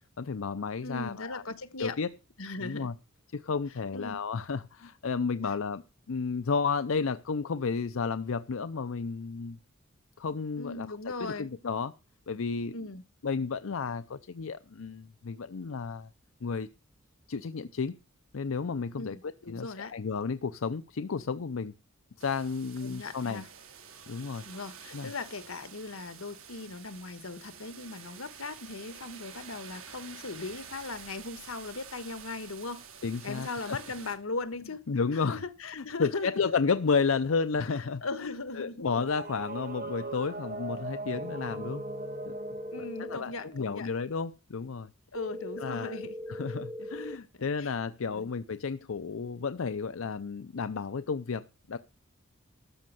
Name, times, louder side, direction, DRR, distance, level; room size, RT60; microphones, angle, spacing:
voice 1, 0.2-1.4 1.8-2.1 2.6-2.9 3.3-9.6 10.2-10.9 11.2-11.9 12.3-12.7 13.2-16.1 16.4-16.7 17.3-17.9 18.3-21.7 22.2-23.4 24.1-24.4 24.9-25.1 33.0-33.8 34.9-35.4 35.7-41.8 42.3-42.4 42.8-44.9 45.6-46.0 46.3-51.8, left 5 dB, 70° left, 0.6 m, -32 dB
voice 2, 0.8-2.0 2.4-2.9 3.9-4.2 5.4-5.5 10.5-11.5 12.7-13.0 19.0-19.9 22.8-23.5 24.4-32.8 33.2-34.8 35.1-36.5 37.7-39.0 42.7-43.9 45.1-46.2 46.8-47.0 47.3-47.7 48.1-48.3, left 3 dB, 90° left, 1.4 m, -39 dB
sound 1, 22.2-34.1, right 7 dB, 80° right, 2.8 m, -49 dB
sound 2, 38.9-43.9, right 3 dB, 45° right, 1.4 m, -40 dB
Ring Back Tone, 41.2-43.2 45.2-47.2, left 1 dB, 20° right, 0.8 m, -40 dB
13.0 x 6.2 x 7.7 m
head